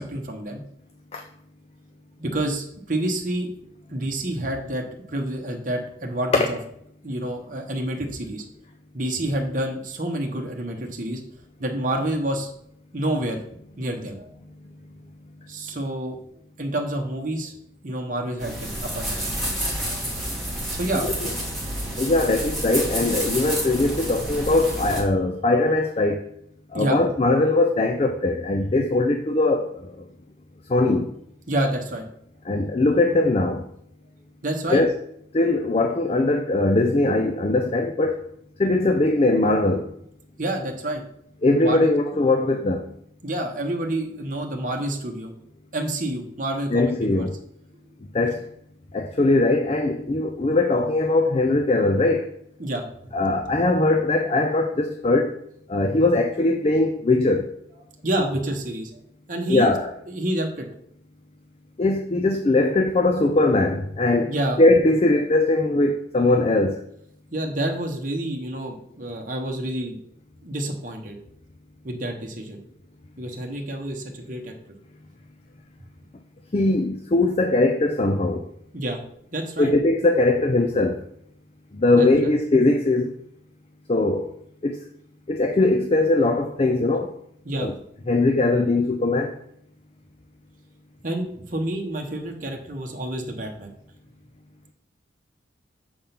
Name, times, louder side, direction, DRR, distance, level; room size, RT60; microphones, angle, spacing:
voice 1, 0.1-0.6 2.2-3.5 3.9-6.6 7.0-8.4 8.9-11.2 11.6-12.5 12.9-13.4 13.8-14.3 15.5-16.2 16.6-17.5 17.8-19.3 20.7-21.1 26.7-27.0 31.5-32.0 34.4-34.8 40.4-41.0 41.6-41.9 43.2-45.3 45.7-47.3 52.6-52.9 58.0-58.9 59.3-59.8 60.1-60.7 64.3-64.6 67.3-70.0 70.4-71.2 71.8-72.6 73.2-74.5 78.7-79.0 79.3-79.7 81.9-82.3 87.4-87.7 91.0-93.7, right 1 dB, 45° right, 1.0 m, -28 dB
sound 1, 18.4-25.0, right 1 dB, ahead, 1.4 m, -29 dB
voice 2, 22.0-26.3 26.7-30.1 30.7-31.1 32.5-33.6 34.7-35.0 35.3-38.2 38.6-39.9 41.4-42.9 46.7-47.3 48.1-48.4 48.9-52.3 53.1-55.4 55.7-57.5 59.5-59.9 61.8-66.8 76.5-78.5 79.6-81.0 81.7-83.1 83.9-84.3 84.6-84.8 85.3-87.1 87.6-87.7 88.1-89.3, left 2 dB, 30° left, 0.4 m, -21 dB
6.8 x 3.6 x 5.7 m
head